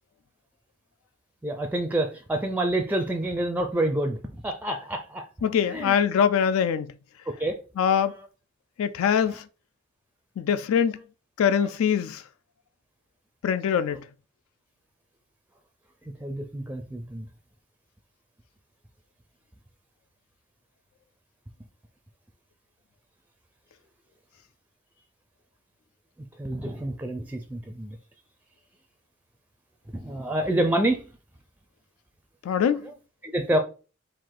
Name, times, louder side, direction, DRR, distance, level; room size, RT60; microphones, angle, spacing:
voice 1, 1.4-5.3 5.7-6.0 7.3-7.6 8.1-8.3 9.3-9.4 16.2-17.3 26.4-28.0 29.9-31.1 32.8-32.9 33.2-33.6, right 1 dB, 10° right, 0.4 m, -28 dB
voice 2, 5.4-6.9 7.8-8.1 8.8-9.4 10.4-11.0 11.4-12.2 13.4-14.0 32.4-32.9, left 8 dB, 75° left, 0.3 m, -23 dB
4.6 x 2.5 x 3.8 m
head